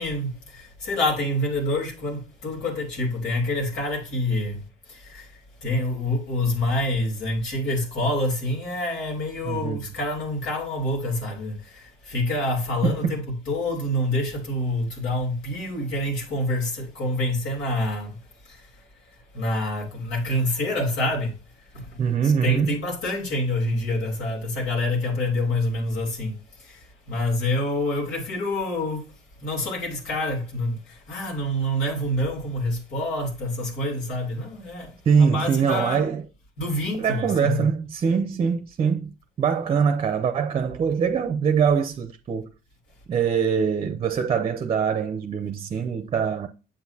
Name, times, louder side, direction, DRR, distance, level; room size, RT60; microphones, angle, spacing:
voice 1, 0.0-18.2 18.4-18.7 19.3-21.4 21.7-29.1 29.4-36.0 36.6-37.7, left 1 dB, 85° left, 3.1 m, -27 dB
voice 2, 9.4-9.8 12.8-13.1 22.0-22.8 35.1-36.2 37.0-42.5 43.1-46.5, right 6 dB, 35° right, 0.6 m, -23 dB
7.6 x 6.2 x 2.8 m
cardioid pair, 110°, 17 cm